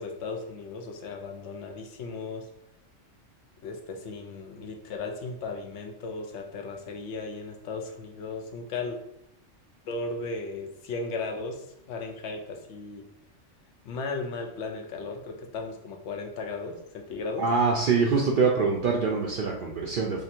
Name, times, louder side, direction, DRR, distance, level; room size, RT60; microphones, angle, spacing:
voice 1, 0.0-2.5 3.6-9.0 9.9-13.0 13.8-17.4 18.2-18.3, left 3 dB, 70° left, 3 dB, 0.9 m, -36 dB
voice 2, 17.4-20.2, right 4 dB, 60° right, -1 dB, 0.5 m, -24 dB
3.0 x 2.5 x 4.2 m, 0.77 s
omnidirectional pair, 1.3 m